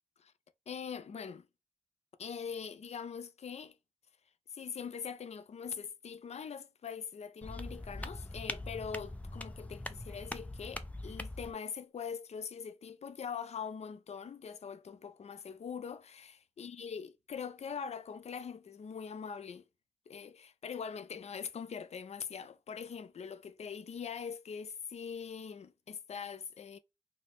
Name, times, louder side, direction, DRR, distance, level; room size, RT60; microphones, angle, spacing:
voice 1, 0.7-1.5 2.2-3.7 4.5-19.6 20.1-26.8, left 6 dB, 85° left, 0.4 m, -42 dB
sound 1, 7.4-11.5, left 1 dB, 15° left, 0.4 m, -42 dB
3.0 x 2.0 x 4.0 m
wide cardioid pair, 90°, 11 cm